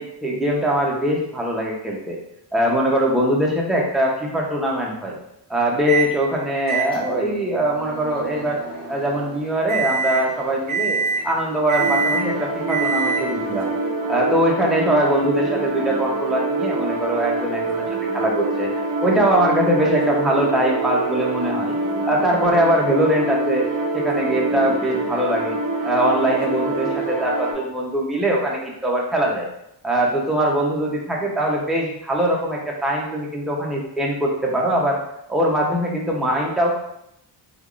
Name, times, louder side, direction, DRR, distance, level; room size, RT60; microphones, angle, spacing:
voice 1, 0.0-2.2 2.5-5.1 5.5-8.6 8.9-13.7 14.1-17.8 18.1-18.7 19.0-21.7 22.1-23.7 23.9-25.5 25.8-29.5 29.8-35.0 35.3-36.8, right 1 dB, ahead, -3 dB, 0.5 m, -22 dB
Microwave oven, 5.9-6.2 6.7-13.5, right 5 dB, 20° right, 1.3 m, -26 dB
sound 1, 11.8-27.5, right 2 dB, 50° right, 0.6 m, -25 dB
3.3 x 2.4 x 2.3 m, 0.80 s
cardioid pair, 100°, 44 cm